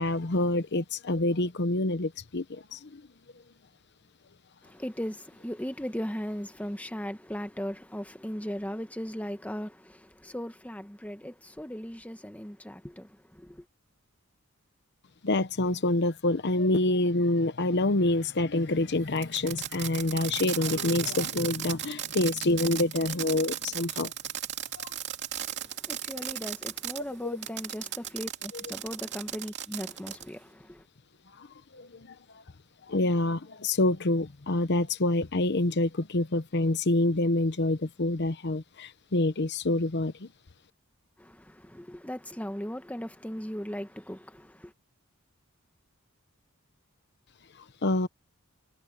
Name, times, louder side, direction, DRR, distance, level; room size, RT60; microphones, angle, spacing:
voice 1, 0.0-3.0 15.2-24.1 24.8-24.9 31.4-31.5 31.7-32.1 32.9-40.3 47.8-48.1, left 2 dB, 55° left, 0.9 m, -27 dB
voice 2, 4.6-13.6 25.5-30.8 41.2-44.7, equal, 5° left, 1.3 m, -38 dB
Fireworks, 19.2-27.0 27.4-30.3, right 11 dB, 55° right, 2.7 m, -36 dB
head